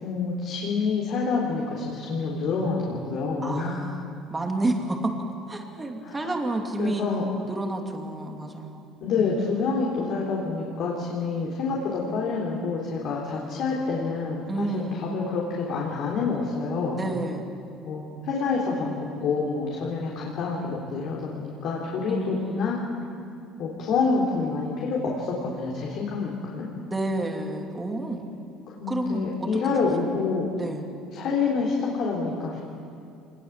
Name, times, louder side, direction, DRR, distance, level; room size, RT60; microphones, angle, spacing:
voice 1, 0.0-3.8 6.0-6.3 6.8-7.3 9.0-17.0 17.8-22.8 23.6-26.7 28.8-30.5 31.1-32.6, left 4 dB, 55° left, -3 dB, 3.8 m, -27 dB
voice 2, 3.4-5.1 5.5-7.1 7.5-8.9 9.1-9.3 14.5-15.1 17.0-17.5 22.1-22.8 26.9-28.2 28.9-29.3 29.7-29.8 30.6-30.8, right 2 dB, 15° right, 2 dB, 2.6 m, -30 dB
26.0 x 20.5 x 7.4 m, 2.5 s
cardioid pair, 140°, 0 cm